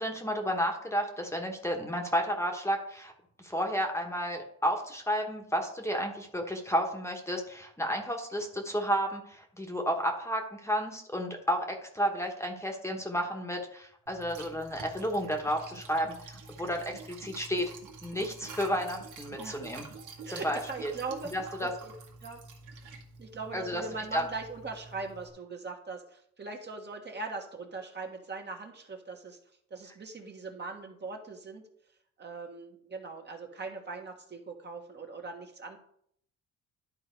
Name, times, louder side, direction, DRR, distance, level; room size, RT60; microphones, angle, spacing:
voice 1, 0.0-3.1 3.4-17.7 18.0-19.8 20.3-20.9 21.3-21.7 23.5-23.8 24.1-24.2, equal, 10° left, 2 dB, 1.3 m, -32 dB
Liquid, 14.1-25.3, right 4 dB, 80° right, 1.7 m, -47 dB
voice 2, 19.4-19.7 20.2-21.9 22.2-22.4 23.2-29.4 29.7-31.6 32.2-35.8, right 3 dB, 35° right, 2 dB, 1.5 m, -40 dB
11.5 x 3.9 x 4.6 m, 0.67 s
cardioid pair, 90°, 30 cm